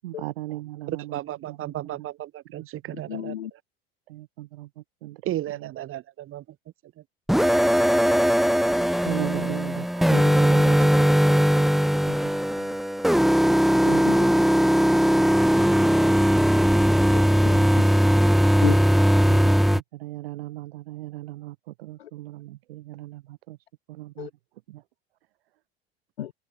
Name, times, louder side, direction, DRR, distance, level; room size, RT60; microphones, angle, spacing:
voice 1, 0.0-2.1 4.1-5.7 9.0-11.8 12.1-12.3 19.3-23.6 23.9-24.3 24.7-24.8, right 16 dB, 70° right, 8.0 m, -38 dB
voice 2, 1.1-3.6 5.3-6.4 7.0-7.1 13.8-14.1, right 13 dB, 45° right, 1.9 m, -34 dB
voice 3, 3.1-3.5 14.0-14.3 17.0-18.1 18.6-18.8 22.0-22.1 24.2-24.3 26.2-26.3, left 11 dB, 75° left, 2.7 m, -33 dB
sound 1, 7.3-19.8, equal, ahead, 0.8 m, -19 dB
figure-of-eight pair, 70°, 31 cm